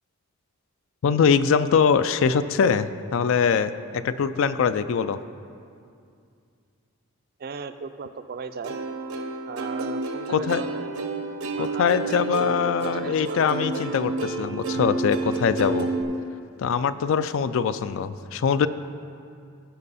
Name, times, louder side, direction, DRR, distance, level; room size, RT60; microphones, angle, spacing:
voice 1, 1.0-3.7 4.0-5.2 10.3-10.6 11.6-15.9 16.6-18.7, left 6 dB, 60° left, 13 dB, 0.3 m, -22 dB
voice 2, 7.4-8.8 9.5-11.1 11.6-12.1 12.4-13.7, right 5 dB, 45° right, 10 dB, 0.4 m, -37 dB
Plucked string instrument, 8.6-16.0, right 3 dB, 90° right, 0.9 m, -30 dB
16.0 x 5.4 x 4.2 m, 2.4 s
head